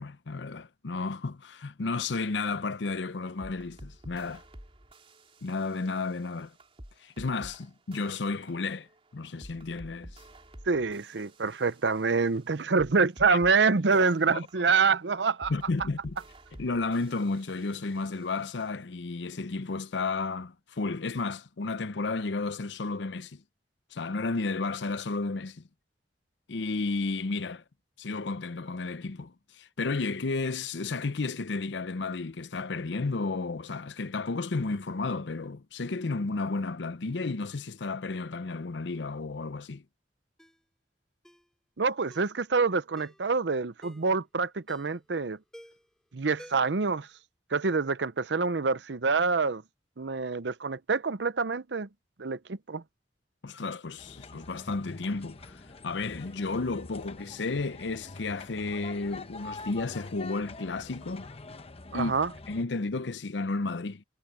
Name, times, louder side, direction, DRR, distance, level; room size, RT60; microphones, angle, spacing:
voice 1, 0.0-4.4 5.4-6.5 7.0-8.9 9.1-10.2 13.3-13.4 13.9-14.1 14.6-14.7 15.5-16.2 16.6-23.4 23.9-25.6 26.5-27.6 28.0-39.8 53.4-61.3 61.9-62.1 62.5-64.0, left 3 dB, 90° left, 0.7 m, -32 dB
sound 1, 2.1-18.7, right 1 dB, 35° right, 3.3 m, -51 dB
voice 2, 10.7-15.5 41.8-45.4 46.1-47.1 47.5-49.6 50.0-51.9 52.2-52.8 61.9-62.3, right 4 dB, 75° right, 0.7 m, -26 dB
Ringtone, 40.4-40.6 41.2-41.5 42.1-42.4 43.0-43.2 43.8-44.1 44.7-45.0 45.5-45.9 46.4-46.8 47.1-47.2, equal, 5° left, 3.1 m, -51 dB
sound 2, 54.0-62.6, left 3 dB, 35° left, 1.0 m, -45 dB
head